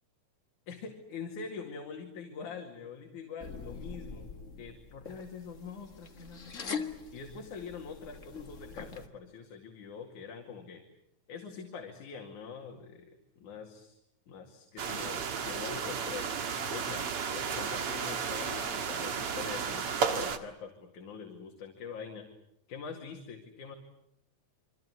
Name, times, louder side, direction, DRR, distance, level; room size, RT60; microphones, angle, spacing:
voice 1, 0.7-4.3 4.6-10.8 11.3-14.0 14.3-16.2 16.7-22.3 22.7-23.8, left 5 dB, 75° left, 2 dB, 3.7 m, -44 dB
sound 1, 3.4-9.1, left 5 dB, 35° left, 1.4 m, -43 dB
sound 2, 14.8-20.4, right 6 dB, 50° right, 2.4 m, -33 dB
28.5 x 24.5 x 8.0 m, 0.80 s
omnidirectional pair, 3.6 m